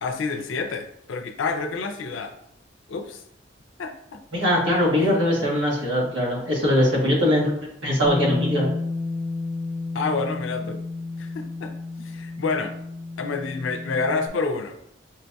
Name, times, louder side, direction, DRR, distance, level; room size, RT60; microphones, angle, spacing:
voice 1, 0.0-2.3 2.9-3.2 3.8-4.2 9.9-10.8 11.2-11.7 12.0-12.7 13.2-14.8, left 4 dB, 90° left, 6 dB, 0.5 m, -28 dB
voice 2, 4.3-7.5 7.8-8.7, left 1 dB, 80° right, -4 dB, 1.4 m, -21 dB
Bass guitar, 8.0-14.3, left 3 dB, 10° left, 0.4 m, -31 dB
5.3 x 2.2 x 2.6 m, 0.74 s
head